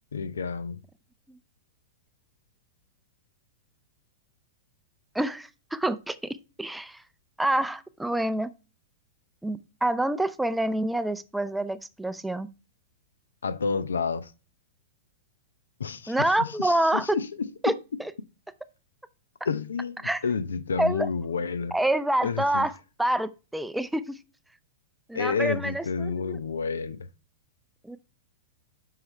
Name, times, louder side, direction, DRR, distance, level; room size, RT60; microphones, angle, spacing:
voice 1, 0.1-0.8 13.4-14.3 15.8-16.8 17.1-17.5 19.5-21.7 22.2-22.7 25.1-27.0, left 5 dB, 75° left, 0.7 m, -30 dB
voice 2, 5.1-7.0 7.4-8.5 9.4-12.5 16.1-17.2 17.6-17.7 18.0-18.1 20.0-20.2 20.8-21.1 21.7-24.2 25.1-26.4 27.8-28.0, right 1 dB, 5° right, 0.5 m, -27 dB
7.8 x 5.8 x 3.3 m
figure-of-eight pair, 105°, 0 cm